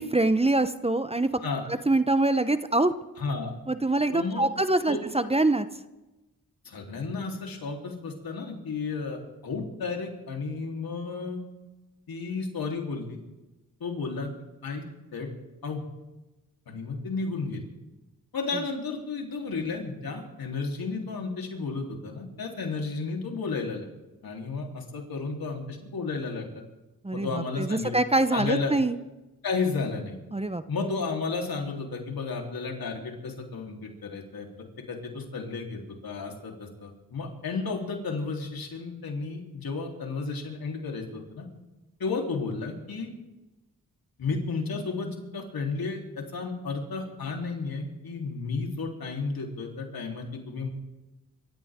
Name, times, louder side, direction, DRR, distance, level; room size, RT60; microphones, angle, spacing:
voice 1, 0.0-1.3 1.9-2.9 3.7-5.7 27.0-29.0 30.3-30.6, right 2 dB, 15° right, 12 dB, 0.9 m, -24 dB
voice 2, 3.2-3.5 4.1-4.5 4.9-5.0 6.6-11.4 12.1-13.2 13.8-14.3 14.6-14.8 15.1-15.3 15.6-15.8 16.7-17.6 18.3-23.9 24.2-26.6 27.1-27.9 28.3-28.7 29.4-30.2 30.7-34.5 34.9-41.5 42.0-43.1 44.2-50.7, left 4 dB, 75° left, 1 dB, 3.7 m, -33 dB
26.0 x 15.0 x 3.7 m, 1.0 s
cardioid pair, 60°, 36 cm